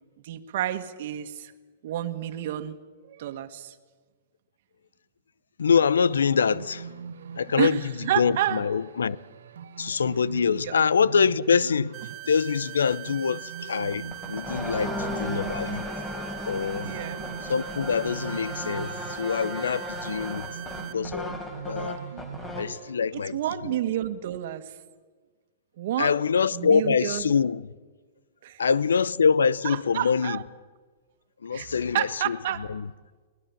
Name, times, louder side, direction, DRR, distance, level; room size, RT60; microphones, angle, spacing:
voice 1, 0.2-1.5 1.8-2.8 3.0-3.8 7.6-7.8 8.1-8.6 10.7-10.8 16.8-17.3 23.3-24.8 25.8-26.2 26.5-27.3 28.4-28.6 29.6-30.4 31.5-31.7 31.9-32.7, right 12 dB, 60° right, 1.7 m, -29 dB
voice 2, 5.6-6.9 7.4-9.2 9.8-15.9 16.5-17.0 17.5-20.6 20.9-21.3 21.7-22.0 22.6-23.8 26.0-27.7 28.6-30.4 31.4-32.9, left 6 dB, 90° left, 0.6 m, -25 dB
sound 1, 6.1-22.9, right 6 dB, 80° right, 1.1 m, -42 dB
sound 2, 11.9-20.9, right 20 dB, 35° right, 1.2 m, -41 dB
sound 3, 13.9-22.8, left 1 dB, 15° left, 3.9 m, -36 dB
23.0 x 19.0 x 7.3 m
hypercardioid pair, 125°, 0 cm